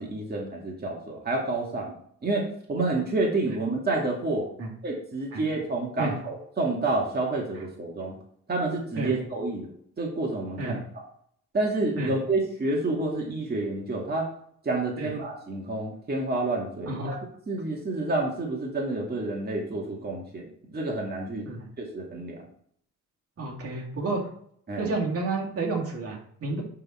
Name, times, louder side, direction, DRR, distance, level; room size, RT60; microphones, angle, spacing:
voice 1, 0.0-4.5 4.8-8.1 8.5-9.7 10.0-10.8 11.5-14.3 14.6-17.2 17.5-21.5 21.8-22.4 24.7-24.9, right 2 dB, 30° right, -2 dB, 2.2 m, -29 dB
voice 2, 16.9-17.2 21.4-21.7 23.4-24.2 24.8-26.6, right 3 dB, 50° right, -2 dB, 2.4 m, -30 dB
10.5 x 3.9 x 4.4 m, 0.65 s
cardioid pair, 90°, 30 cm